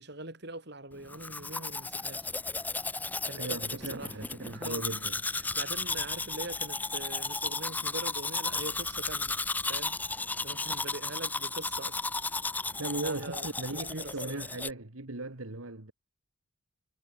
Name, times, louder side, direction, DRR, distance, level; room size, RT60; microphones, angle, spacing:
voice 1, 0.0-2.3 3.2-4.1 4.4-4.9 5.3-9.4 9.7-10.0 10.4-12.0 13.0-13.5 13.9-14.4, right 2 dB, 50° right, 4.4 m, -42 dB
Domestic sounds home sounds, 1.1-14.7, left 3 dB, 10° left, 0.4 m, -34 dB
voice 2, 3.4-5.2 12.7-15.9, right 2 dB, 75° right, 2.1 m, -38 dB
head